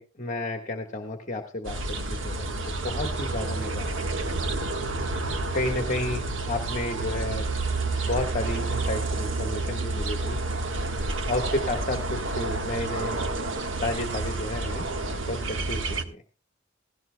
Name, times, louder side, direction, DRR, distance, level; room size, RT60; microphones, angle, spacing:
voice 1, 0.0-4.1 5.5-7.5 8.0-10.4 11.3-13.2 13.8-14.8 15.3-16.2, left 2 dB, 40° left, 4 dB, 1.5 m, -32 dB
sound 1, 1.6-16.0, right 2 dB, 75° right, 1.5 m, -29 dB
17.0 x 17.0 x 2.3 m, 0.34 s
head